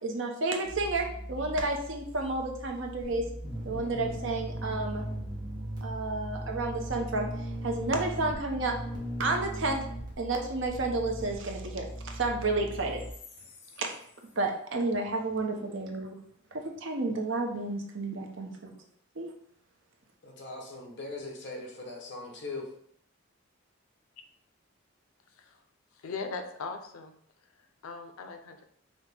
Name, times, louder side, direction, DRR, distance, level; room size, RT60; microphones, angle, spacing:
voice 1, 0.0-3.2 3.6-5.0 5.8-7.3 7.6-8.8 9.2-9.8 10.2-13.0 13.8-13.9 14.4-16.2 16.5-18.7 19.2-19.3, right 2 dB, 60° right, 3 dB, 0.6 m, -31 dB
sound 1, 0.6-13.1, right 1 dB, 20° right, 0.7 m, -38 dB
voice 2, 20.2-22.7, left 2 dB, 55° left, 1 dB, 0.8 m, -40 dB
voice 3, 26.0-27.1 27.8-28.6, left 4 dB, 85° left, 7 dB, 0.5 m, -39 dB
5.1 x 2.1 x 3.2 m, 0.67 s
head